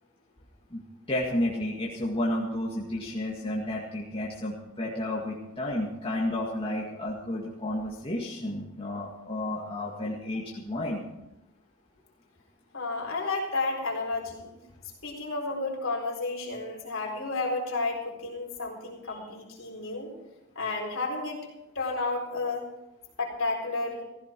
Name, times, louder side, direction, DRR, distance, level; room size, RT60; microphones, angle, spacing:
voice 1, 1.1-11.0 19.1-19.2, left 1 dB, 25° left, -4 dB, 2.0 m, -31 dB
voice 2, 12.7-14.5 15.0-20.1 20.5-21.5 21.7-22.7 23.2-24.0, left 3 dB, 60° left, 0 dB, 4.3 m, -31 dB
15.5 x 15.5 x 4.6 m, 0.94 s
head